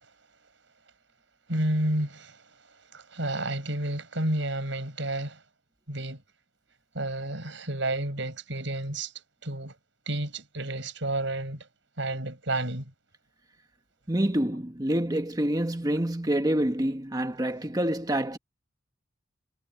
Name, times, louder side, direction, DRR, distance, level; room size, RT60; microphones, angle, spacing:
voice 1, 1.5-2.4 2.9-5.4 5.9-6.2 6.9-9.1 9.4-9.7 10.1-11.7 12.0-12.9, right 1 dB, 70° right, 7.3 m, -30 dB
voice 2, 14.1-18.4, right 1 dB, 20° right, 1.5 m, -27 dB
head